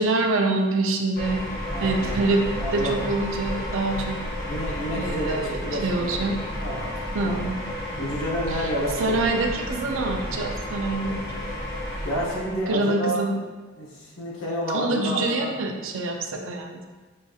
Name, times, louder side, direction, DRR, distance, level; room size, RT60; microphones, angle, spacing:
voice 1, 0.0-1.4 1.8-2.4 2.7-4.2 4.9-6.4 7.1-7.6 8.5-8.7 9.0-11.2 12.7-13.4 14.7-16.8, right 2 dB, 85° right, 3 dB, 0.5 m, -25 dB
sound 1, 1.2-12.8, equal, 55° left, 1.0 m, -32 dB
voice 2, 1.7-2.3 2.6-3.0 4.5-6.2 6.6-6.9 7.2-7.4 8.0-9.3 12.0-13.3 13.8-15.5, equal, 90° left, -4 dB, 1.0 m, -29 dB
5.5 x 2.3 x 2.7 m, 1.3 s
head